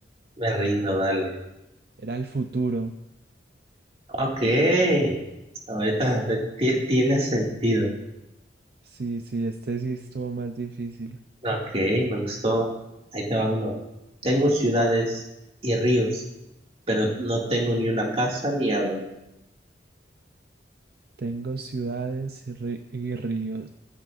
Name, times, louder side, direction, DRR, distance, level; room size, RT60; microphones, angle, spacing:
voice 1, 0.4-1.3 4.2-5.2 5.7-7.9 11.4-12.7 13.1-13.8 14.2-15.2 15.6-16.2 16.9-19.1, equal, 35° right, -2 dB, 2.2 m, -24 dB
voice 2, 2.0-2.9 8.8-11.2 21.2-23.7, right 3 dB, 60° right, 6 dB, 0.6 m, -30 dB
15.0 x 12.5 x 2.6 m, 0.91 s
head